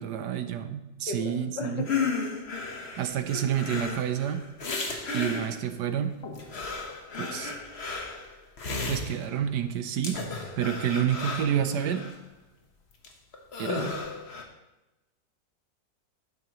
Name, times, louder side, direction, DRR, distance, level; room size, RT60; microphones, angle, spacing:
voice 1, 0.0-1.9 3.0-4.4 5.1-6.2 7.2-7.5 8.9-10.2 10.6-12.1 13.6-14.0, right 9 dB, 75° right, 10 dB, 1.3 m, -29 dB
voice 2, 1.1-2.3, left 3 dB, 80° left, 5 dB, 1.9 m, -36 dB
sound 1, 1.8-5.8 6.2-9.5 10.0-12.1 13.0-13.1 13.3-14.4, left 4 dB, 40° left, 1.4 m, -34 dB
12.5 x 9.8 x 3.1 m, 1.0 s
omnidirectional pair, 1.9 m